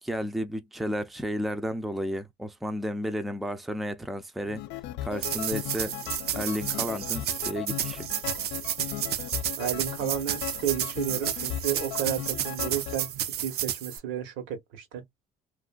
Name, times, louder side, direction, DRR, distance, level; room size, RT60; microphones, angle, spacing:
voice 1, 0.0-4.6 5.0-6.0 6.3-8.1, equal, ahead, 0.5 m, -32 dB
sound 1, 4.4-13.1, left 13 dB, 70° left, 0.5 m, -37 dB
sound 2, 5.2-14.0, right 11 dB, 55° right, 0.5 m, -32 dB
voice 2, 9.6-13.1 13.4-15.0, right 10 dB, 80° right, 1.1 m, -32 dB
2.6 x 2.5 x 2.3 m
supercardioid pair, 80°, 19 cm